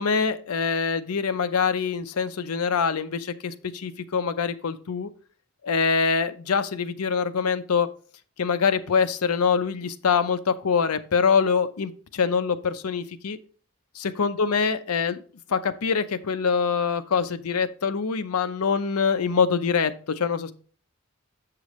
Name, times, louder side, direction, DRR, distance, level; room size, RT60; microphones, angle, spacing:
voice 1, 0.0-5.1 5.6-7.9 8.4-13.4 13.9-15.2 15.5-20.5, left 5 dB, 80° left, 11 dB, 0.6 m, -24 dB
7.3 x 6.7 x 3.0 m, 0.41 s
head